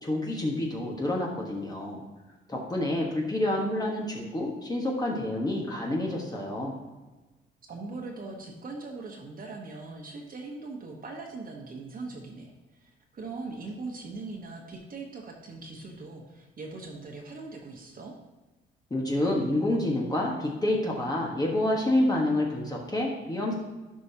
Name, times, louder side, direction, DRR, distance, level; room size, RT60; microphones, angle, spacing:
voice 1, 0.0-2.0 2.5-6.7 18.9-23.5, left 1 dB, 20° left, -2 dB, 1.4 m, -28 dB
voice 2, 7.7-18.1, right 3 dB, 45° right, 0 dB, 1.3 m, -40 dB
11.0 x 5.4 x 2.9 m, 1.2 s
cardioid pair, 90°, 20 cm